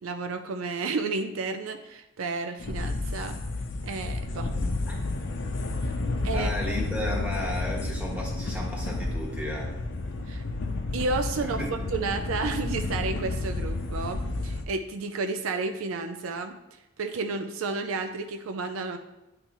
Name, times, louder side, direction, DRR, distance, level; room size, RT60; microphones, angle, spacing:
voice 1, 0.0-3.4 3.8-4.5 5.8-5.9 6.2-6.5 10.3-10.4 10.9-11.6 11.9-16.6 17.0-19.0, right 4 dB, 75° right, 6 dB, 0.4 m, -31 dB
sound 1, 2.6-14.6, left 2 dB, 60° left, 0.6 m, -31 dB
voice 2, 4.4-4.9 6.3-9.8 11.4-11.7, left 1 dB, 5° right, -3 dB, 1.3 m, -34 dB
9.7 x 3.3 x 3.0 m, 0.97 s
head